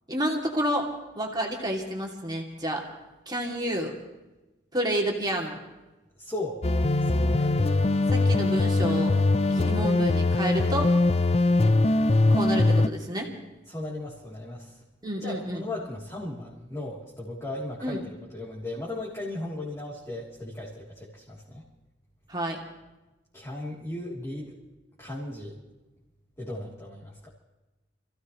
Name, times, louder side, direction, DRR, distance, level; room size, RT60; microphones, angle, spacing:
voice 1, 0.1-0.9 1.1-2.8 3.3-3.9 4.7-5.6 8.1-9.1 9.5-10.9 12.3-13.3 15.0-15.6 17.8-18.0 22.3-22.6, equal, 25° right, 0 dB, 2.8 m, -29 dB
voice 2, 6.2-6.6 7.0-7.8 13.7-14.8 15.2-18.0 18.3-21.6 23.3-24.5 25.0-25.6 26.4-27.3, left 1 dB, 15° left, -6 dB, 3.4 m, -36 dB
sound 1, 6.6-12.9, left 2 dB, 35° left, 0.6 m, -22 dB
28.0 x 16.0 x 3.2 m, 1.1 s
head